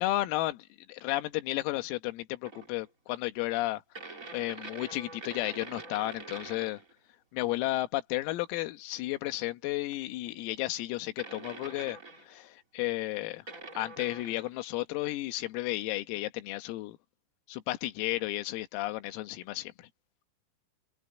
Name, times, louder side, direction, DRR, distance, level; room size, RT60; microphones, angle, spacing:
voice 1, 0.0-6.8 7.3-12.0 12.3-13.4 13.7-17.0 17.5-19.9, left 17 dB, 85° left, 4.0 m, -33 dB
sound 1, 2.4-2.8 3.9-6.9 9.9-10.0 11.2-12.4 13.5-14.6, right 3 dB, 20° right, 2.5 m, -45 dB
omnidirectional pair, 6.0 m